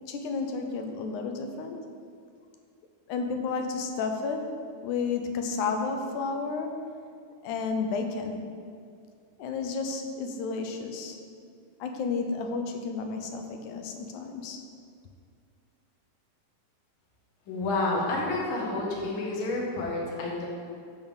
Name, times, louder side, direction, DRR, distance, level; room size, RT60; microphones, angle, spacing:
voice 1, 0.1-1.8 3.1-6.8 7.4-8.4 9.4-11.2 11.8-14.6, left 4 dB, 75° left, 4 dB, 2.0 m, -32 dB
voice 2, 17.5-20.4, left 2 dB, 50° left, -3 dB, 1.9 m, -29 dB
8.7 x 4.5 x 7.0 m, 2.3 s
omnidirectional pair, 3.8 m